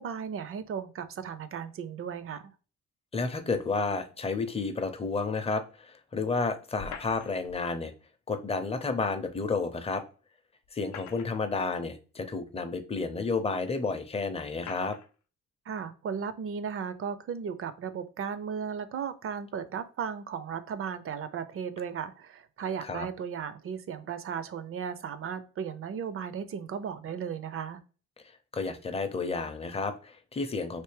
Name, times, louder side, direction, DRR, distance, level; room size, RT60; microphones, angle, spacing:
voice 1, 0.0-2.5 15.7-27.8, right 7 dB, 45° right, 12 dB, 0.5 m, -36 dB
voice 2, 3.1-7.9 8.3-10.0 10.7-15.0 22.8-23.1 28.5-30.8, left 4 dB, 20° left, 8 dB, 0.6 m, -31 dB
sound 1, 6.8-7.6 9.3-9.4 10.6-11.6 12.4-12.5 13.5-13.6 14.6-15.1, left 7 dB, 75° left, 0.5 m, -45 dB
3.3 x 2.8 x 3.2 m, 0.37 s
cardioid pair, 90°, 30 cm